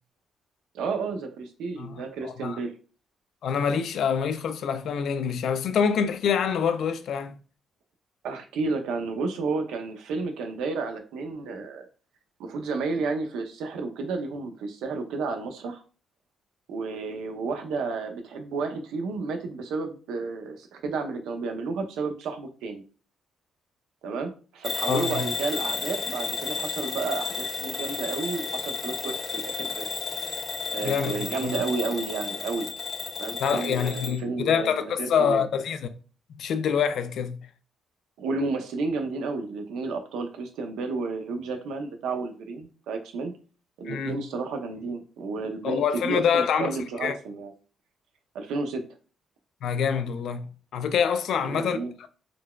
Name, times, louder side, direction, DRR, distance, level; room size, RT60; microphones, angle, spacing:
voice 1, 0.7-2.7 8.2-11.9 12.4-15.8 16.7-22.8 24.0-29.9 30.7-32.7 33.2-35.4 38.2-43.3 43.8-47.5 48.3-48.8 51.4-51.9, right 4 dB, 85° right, 0.5 m, -31 dB
voice 2, 1.8-2.6 3.4-7.4 24.9-25.2 30.8-31.5 33.4-35.9 36.3-37.4 43.9-44.2 45.6-46.7 47.0-47.1 49.6-52.1, left 7 dB, 70° left, 0.3 m, -26 dB
Bell / Alarm, 24.6-34.2, left 4 dB, 50° left, 0.7 m, -32 dB
3.8 x 2.2 x 2.2 m
cardioid pair, 90°, 0 cm